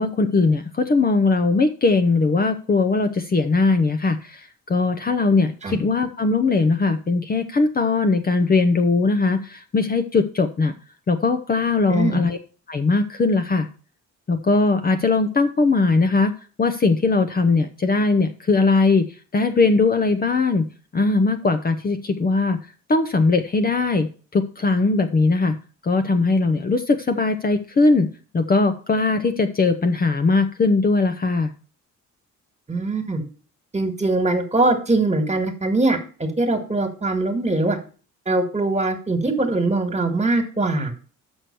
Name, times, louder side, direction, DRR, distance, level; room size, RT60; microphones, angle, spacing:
voice 1, 0.0-10.7 11.1-12.4 12.7-13.7 14.3-16.3 16.6-19.1 19.3-20.7 20.9-22.6 22.9-25.6 25.8-28.1 28.3-31.5, left 3 dB, 30° left, 7 dB, 0.8 m, -20 dB
voice 2, 11.9-12.2 32.7-33.2 33.7-37.8 38.3-40.9, right 2 dB, 20° right, 7 dB, 1.9 m, -22 dB
6.3 x 6.1 x 6.8 m, 0.38 s
cardioid pair, 90°, 30 cm